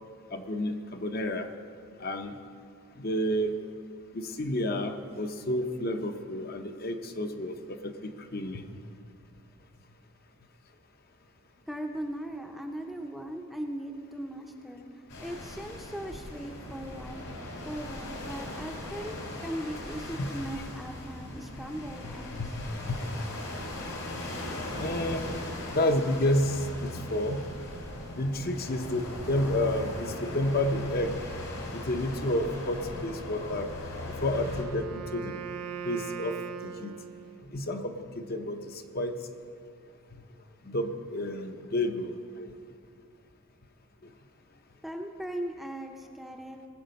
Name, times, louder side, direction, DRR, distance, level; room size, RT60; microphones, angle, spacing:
voice 1, 0.3-1.5 2.0-2.4 3.0-3.6 4.1-8.6 20.2-20.3 21.5-21.6 22.0-23.0 24.8-25.4 25.7-27.4 28.1-31.1 31.7-33.7 34.0-35.3 35.8-36.3 36.6-36.9 37.5-39.1 40.7-42.2, left 1 dB, 40° left, 6 dB, 0.7 m, -30 dB
voice 2, 11.7-14.9 15.2-17.3 17.6-19.1 19.4-22.4 44.8-46.6, equal, ahead, 2 dB, 0.6 m, -38 dB
sound 1, 15.1-34.6, left 1 dB, 75° left, 2.7 m, -39 dB
Wind instrument woodwind instrument, 34.3-37.6, right 7 dB, 90° right, 0.5 m, -40 dB
19.5 x 7.3 x 5.2 m, 2.3 s
head